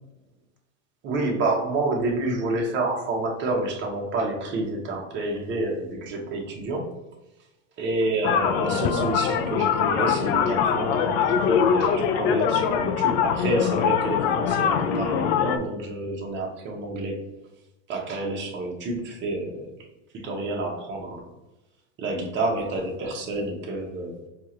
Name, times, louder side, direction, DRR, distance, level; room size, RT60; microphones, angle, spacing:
voice 1, 1.0-7.0 7.8-17.2 17.9-19.7 20.1-21.3 22.0-24.3, right 2 dB, 30° right, 0 dB, 0.9 m, -29 dB
sound 1, 8.2-15.6, left 7 dB, 60° left, 0.5 m, -23 dB
4.5 x 2.5 x 2.9 m, 0.97 s
supercardioid pair, 120°, 36 cm